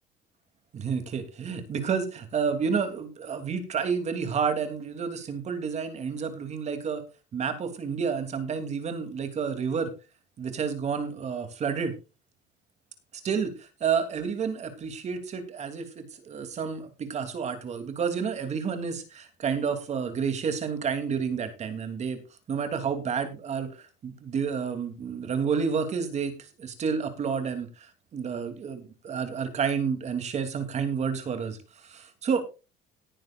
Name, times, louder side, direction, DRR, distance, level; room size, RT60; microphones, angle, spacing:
voice 1, 0.7-7.0 7.3-9.9 10.4-11.9 13.2-22.2 22.5-27.9 28.1-31.6 31.8-32.4, right 6 dB, 35° right, 8 dB, 2.9 m, -30 dB
18.5 x 10.0 x 2.5 m, 0.30 s
cardioid pair, 140°, 19 cm